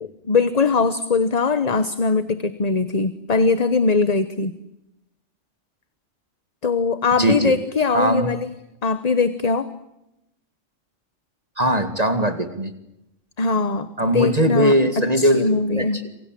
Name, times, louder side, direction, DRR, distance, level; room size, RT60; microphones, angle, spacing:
voice 1, 0.0-4.5 6.6-8.5 8.8-9.7 13.4-13.9 14.1-16.0, left 4 dB, 35° left, 13 dB, 1.2 m, -21 dB
voice 2, 7.2-7.6 7.9-8.3 11.6-12.7 14.0-15.5 15.8-16.1, right 1 dB, 30° right, 9 dB, 2.2 m, -20 dB
27.5 x 25.5 x 7.6 m, 0.89 s
omnidirectional pair, 1.3 m